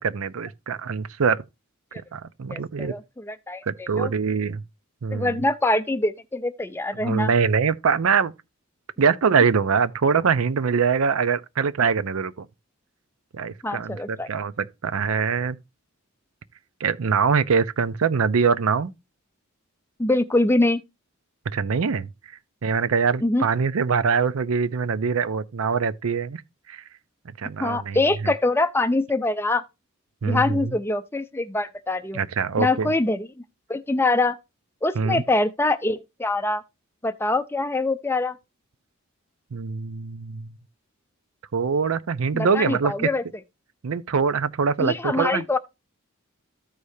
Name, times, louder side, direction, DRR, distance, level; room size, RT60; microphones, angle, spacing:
voice 1, 0.0-1.4 2.1-2.9 3.7-4.6 5.0-5.4 7.0-8.3 9.0-12.5 13.3-15.6 16.8-18.9 21.5-22.1 22.6-26.4 26.7-26.8 27.3-28.3 30.2-30.7 32.1-32.9 35.0-35.2 39.5-40.5 41.5-43.1 43.8-45.4, right 5 dB, 80° right, 0.5 m, -23 dB
voice 2, 2.5-4.1 5.1-7.3 13.6-14.3 20.0-20.8 23.2-23.5 27.6-29.6 30.2-32.2 32.6-33.3 33.7-34.4 34.8-36.6 37.0-38.4 42.3-43.2 44.8-45.6, left 2 dB, 10° left, 0.4 m, -24 dB
14.5 x 4.9 x 2.7 m
head